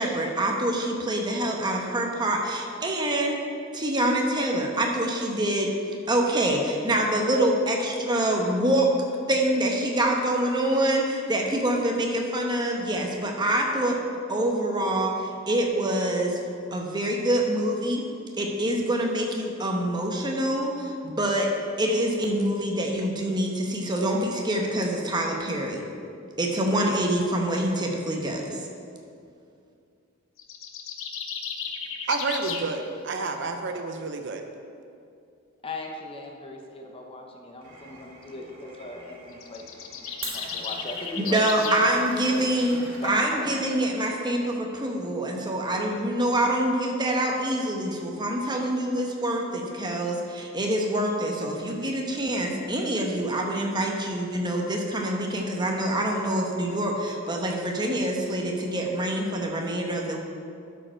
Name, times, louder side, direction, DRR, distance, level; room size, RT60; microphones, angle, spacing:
voice 1, 0.0-3.4 3.7-5.7 6.1-8.9 9.3-14.0 14.3-16.4 16.7-18.0 18.4-21.5 21.8-25.9 26.4-28.6 41.2-60.2, right 1 dB, 20° right, 0 dB, 1.0 m, -25 dB
sound 1, 30.4-32.7 39.3-41.9, left 6 dB, 70° left, 0.7 m, -34 dB
voice 2, 32.1-34.4, right 3 dB, 60° right, 6 dB, 0.6 m, -29 dB
voice 3, 35.6-43.5, left 2 dB, 25° left, 1 dB, 0.8 m, -39 dB
Glass, 37.6-43.9, right 3 dB, 80° right, 2.1 m, -44 dB
12.0 x 5.1 x 4.4 m, 2.4 s
head